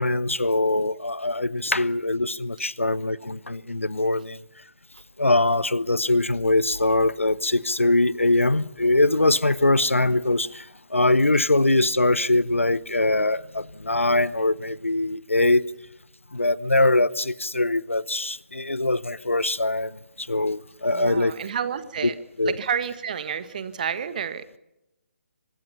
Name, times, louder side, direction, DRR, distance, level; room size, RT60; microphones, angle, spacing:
voice 1, 0.0-4.4 5.2-15.6 16.3-21.3 22.0-22.1 22.4-22.6, left 2 dB, 80° left, 0.9 m, -22 dB
voice 2, 20.9-22.1 22.4-24.6, right 7 dB, 40° right, 1.7 m, -30 dB
25.0 x 21.0 x 5.7 m
figure-of-eight pair, 140°, 7 cm